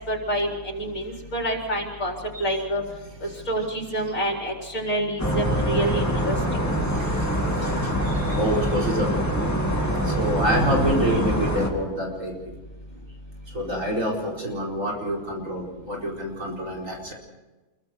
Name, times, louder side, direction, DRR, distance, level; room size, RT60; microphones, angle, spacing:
voice 1, 0.1-2.8 3.2-6.4, right 1 dB, 65° left, 0 dB, 4.7 m, -27 dB
voice 2, 2.5-2.9 6.7-9.2 10.0-12.3 13.5-17.1, equal, 60° right, 0 dB, 5.0 m, -27 dB
sound 1, 5.2-11.7, equal, 10° left, 2.3 m, -24 dB
28.0 x 22.5 x 4.6 m, 1.1 s
omnidirectional pair, 1.5 m